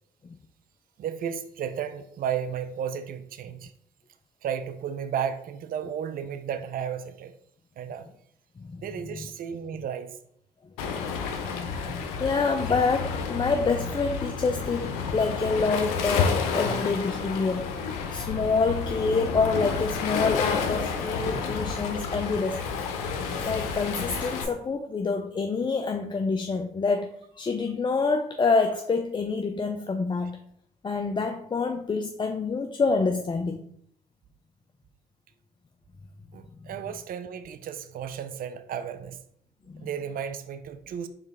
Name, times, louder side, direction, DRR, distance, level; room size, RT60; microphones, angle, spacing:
voice 1, 1.0-3.7 4.4-7.3 7.8-8.1 8.8-10.2 36.3-39.2 39.8-41.1, right 8 dB, 50° right, 11 dB, 0.4 m, -33 dB
voice 2, 8.6-9.3 9.7-9.8 12.2-17.7 18.1-22.6 23.4-30.4 30.8-33.6 36.6-36.7 39.7-39.9, left 4 dB, 25° left, 5 dB, 0.4 m, -27 dB
Waves surf, 10.8-24.4, left 5 dB, 90° left, 0.5 m, -30 dB
4.6 x 3.1 x 3.5 m, 0.69 s
hypercardioid pair, 50°, 19 cm